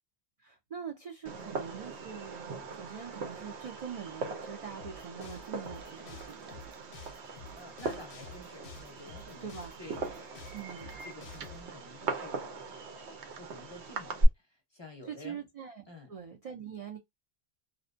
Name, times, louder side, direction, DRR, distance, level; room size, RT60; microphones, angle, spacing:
voice 1, 0.4-6.6 9.4-9.8 10.5-10.9 15.0-17.0, right 7 dB, 60° right, 0.4 m, -43 dB
Fireworks, 1.3-14.3, right 2 dB, 85° right, 0.9 m, -38 dB
sound 1, 4.8-11.6, left 4 dB, 85° left, 0.9 m, -50 dB
voice 2, 7.6-9.5 9.8-10.1 11.0-13.1 13.4-15.4 15.9-16.1, left 1 dB, 30° left, 0.6 m, -50 dB
2.5 x 2.1 x 2.4 m
omnidirectional pair, 1.1 m